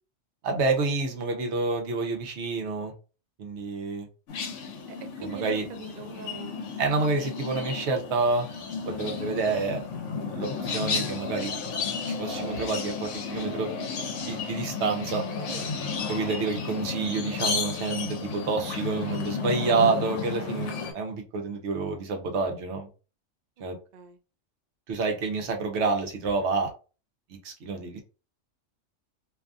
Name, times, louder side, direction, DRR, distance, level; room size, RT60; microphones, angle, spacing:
voice 1, 0.4-2.9 3.4-4.1 5.2-5.6 6.8-8.5 8.9-9.8 10.3-11.5 12.1-13.7 14.2-15.2 16.1-22.9 23.6-23.8 24.9-26.7 27.3-28.0, right 4 dB, 70° right, 0.9 m, -28 dB
sound 1, 4.3-20.9, left 5 dB, 80° left, 1.0 m, -33 dB
voice 2, 4.9-6.5 15.5-15.7 23.9-24.2, right 6 dB, 85° right, 0.3 m, -42 dB
2.6 x 2.4 x 2.4 m
omnidirectional pair, 1.3 m